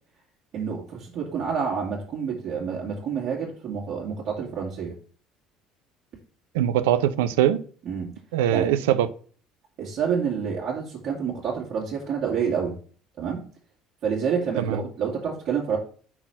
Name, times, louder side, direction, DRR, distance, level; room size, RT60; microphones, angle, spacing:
voice 1, 0.5-4.9 7.8-8.1 8.5-8.7 9.8-12.8 13.2-13.4 14.0-15.8, right 6 dB, 55° right, 2.2 m, -28 dB
voice 2, 6.5-7.6 8.3-9.1 14.6-14.8, right 11 dB, 75° right, 0.5 m, -22 dB
5.9 x 4.0 x 5.9 m
hypercardioid pair, 60°, 0 cm